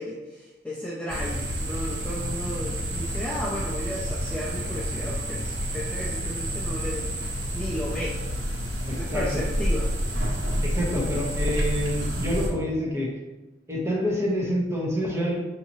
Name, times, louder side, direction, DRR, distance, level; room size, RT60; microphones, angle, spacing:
voice 1, 0.0-8.2 8.9-9.9, equal, 5° left, -6 dB, 0.4 m, -34 dB
sound 1, 1.1-12.5, equal, 80° right, 1.1 m, -29 dB
voice 2, 8.9-9.2 10.6-13.1 13.7-15.4, equal, 15° right, -4 dB, 0.9 m, -27 dB
5.6 x 2.7 x 2.9 m, 1.1 s
head